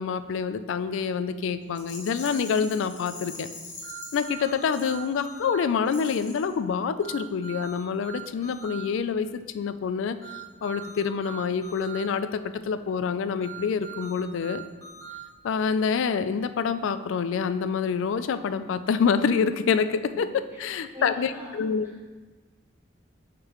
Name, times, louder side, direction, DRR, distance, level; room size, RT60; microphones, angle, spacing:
voice 1, 0.0-3.5 4.1-10.2 10.6-14.6 15.4-20.3 20.6-21.9, left 6 dB, 75° left, 12 dB, 0.3 m, -27 dB
Rattle, 1.7-5.4 5.9-6.6, left 2 dB, 40° left, 1.0 m, -43 dB
sound 1, 3.8-5.6 7.0-8.8 10.2-12.0 13.4-15.2, right 8 dB, 15° left, 1.2 m, -42 dB
voice 2, 20.1-22.1, left 2 dB, 10° right, -7 dB, 1.6 m, -43 dB
9.9 x 3.7 x 3.0 m, 1.3 s
head